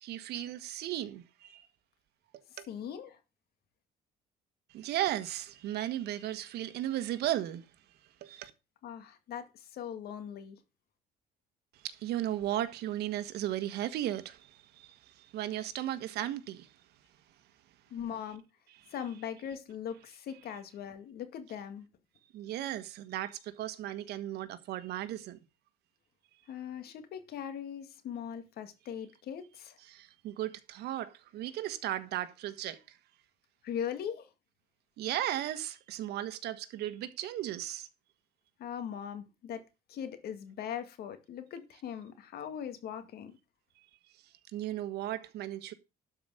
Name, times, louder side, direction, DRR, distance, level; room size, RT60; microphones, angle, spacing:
voice 1, 0.0-1.7 2.6-2.7 4.7-7.6 8.2-8.5 11.8-16.7 22.3-25.4 29.9-33.0 35.0-37.9 44.5-45.7, right 13 dB, 75° right, 1.5 m, -36 dB
voice 2, 2.7-3.2 8.8-10.6 17.9-18.4 18.9-21.9 26.5-29.8 33.6-34.3 38.6-39.6 39.9-43.4, left 8 dB, 65° left, 2.1 m, -40 dB
12.0 x 5.1 x 6.5 m
cardioid pair, 110°, 17 cm